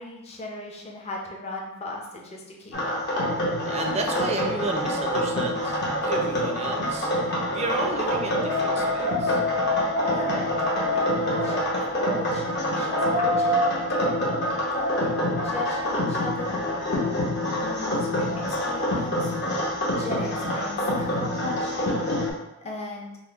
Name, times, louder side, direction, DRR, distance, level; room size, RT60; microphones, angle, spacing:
voice 1, 0.0-3.0 10.1-10.5 10.9-16.6 17.5-19.3 20.0-22.0 22.6-23.2, left 2 dB, 30° left, -1 dB, 0.6 m, -37 dB
sound 1, 2.7-22.3, left 1 dB, 55° left, 0.9 m, -26 dB
voice 2, 3.6-7.1 7.5-9.4, right 2 dB, 30° right, 3 dB, 0.4 m, -32 dB
4.1 x 2.0 x 3.4 m, 0.92 s
head